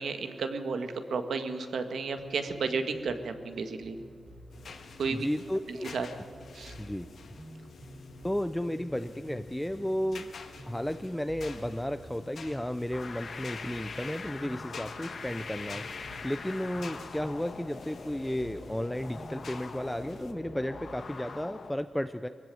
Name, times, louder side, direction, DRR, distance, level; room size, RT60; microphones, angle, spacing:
voice 1, 0.0-4.0 5.0-5.3 5.7-6.1 6.5-6.7, right 4 dB, 85° right, 7 dB, 1.7 m, -33 dB
sound 1, 2.2-21.0, right 1 dB, 20° right, 3.5 m, -51 dB
sound 2, 4.5-20.3, left 5 dB, 65° left, 1.7 m, -49 dB
voice 2, 5.1-5.9 6.7-7.1 8.2-10.3 10.7-22.3, equal, 5° left, 10 dB, 0.5 m, -33 dB
sound 3, 12.9-21.7, left 4 dB, 50° left, 1.3 m, -43 dB
22.5 x 15.5 x 9.3 m, 2.3 s
wide cardioid pair, 170°, 0 cm